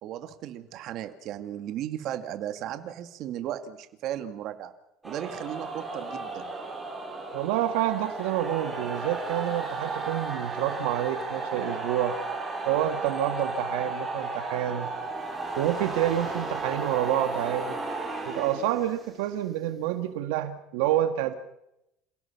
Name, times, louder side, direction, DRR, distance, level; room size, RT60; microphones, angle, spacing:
voice 1, 0.0-4.7 5.0-6.5, right 11 dB, 55° right, 8 dB, 2.0 m, -36 dB
sound 1, 5.0-19.2, right 3 dB, 10° right, 5.8 m, -34 dB
voice 2, 7.3-12.2 12.7-14.9 15.6-17.8 18.3-21.3, right 12 dB, 85° right, 8 dB, 1.7 m, -28 dB
28.5 x 17.0 x 5.9 m, 0.84 s
cardioid pair, 140°, 0 cm